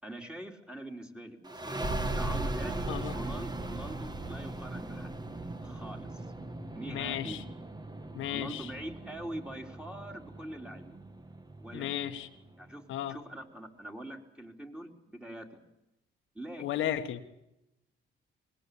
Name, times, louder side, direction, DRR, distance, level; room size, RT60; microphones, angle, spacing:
voice 1, 0.0-1.9 2.2-5.1 5.6-6.3 6.6-7.4 8.2-11.0 11.6-11.9 12.6-15.6 16.3-16.9, right 1 dB, 5° right, 3.8 m, -43 dB
sound 1, 1.4-12.7, right 2 dB, 20° right, 1.9 m, -38 dB
voice 2, 6.9-7.4 8.1-8.7 11.7-12.3 12.9-13.2 16.6-17.2, left 11 dB, 85° left, 1.5 m, -34 dB
24.5 x 21.0 x 8.6 m
cardioid pair, 90°, 20 cm